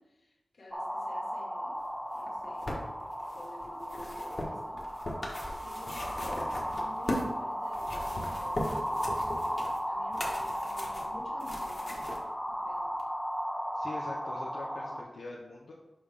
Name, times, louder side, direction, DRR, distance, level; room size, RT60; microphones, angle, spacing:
voice 1, 0.0-1.8 2.1-2.7 3.3-4.8 5.6-9.6 9.9-12.2 12.5-12.9, left 1 dB, 70° left, -3 dB, 2.0 m, -52 dB
sound 1, 0.7-15.0, equal, ahead, 0.6 m, -36 dB
sound 2, 2.2-7.3 7.7-12.2 13.0-13.1, left 1 dB, 40° left, 1.4 m, -38 dB
voice 2, 13.7-15.7, left 2 dB, 85° left, -4 dB, 0.8 m, -43 dB
6.9 x 5.1 x 3.5 m, 1.0 s
wide cardioid pair, 105°, 0 cm